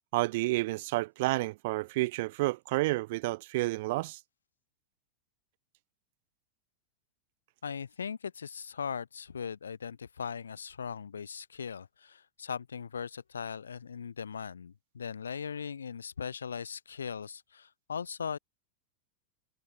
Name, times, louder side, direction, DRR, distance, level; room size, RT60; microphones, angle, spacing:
voice 1, 0.1-4.2, right 20 dB, 50° right, 0.7 m, -30 dB
voice 2, 7.6-18.4, left 6 dB, 70° left, 1.5 m, -39 dB
figure-of-eight pair, 90°, 0 cm